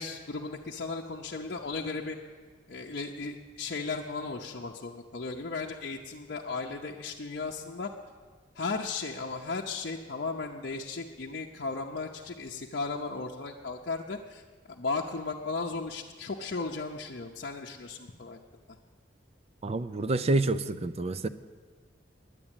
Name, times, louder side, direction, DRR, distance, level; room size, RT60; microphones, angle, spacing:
voice 1, 0.0-2.2 2.7-7.9 8.6-14.4 14.7-18.4, left 4 dB, 60° left, -2 dB, 0.7 m, -35 dB
voice 2, 19.6-21.3, right 2 dB, 35° right, 14 dB, 0.5 m, -28 dB
10.0 x 9.7 x 8.9 m, 1.5 s
head